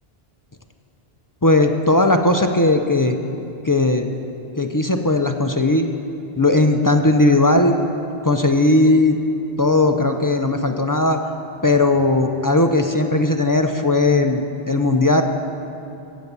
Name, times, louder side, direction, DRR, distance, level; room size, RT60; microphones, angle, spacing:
voice 1, 1.4-3.2 3.7-4.1 4.6-5.9 6.4-7.8 8.2-9.2 9.6-11.2 11.6-15.2, left 2 dB, 30° left, 5 dB, 0.4 m, -17 dB
16.0 x 7.1 x 6.8 m, 2.8 s
omnidirectional pair, 1.0 m